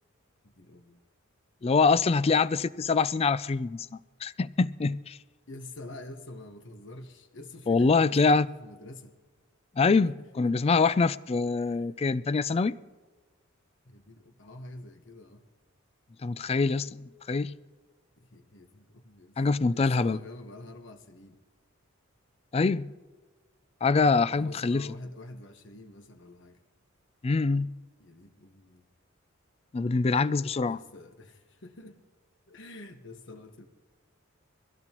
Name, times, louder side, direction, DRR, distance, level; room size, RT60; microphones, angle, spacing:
voice 1, 0.4-1.0 5.5-9.2 10.3-10.5 11.6-12.0 13.8-15.4 18.2-19.4 19.7-21.4 24.2-26.6 28.0-28.8 30.6-32.0 32.5-33.7, left 2 dB, 60° left, 1.3 m, -47 dB
voice 2, 1.6-3.9 4.2-5.2 7.7-8.5 9.8-12.8 16.2-17.5 19.4-20.2 22.5-22.9 23.8-24.9 27.2-27.7 29.7-30.8, left 4 dB, 30° left, 0.3 m, -24 dB
23.0 x 15.5 x 3.0 m
head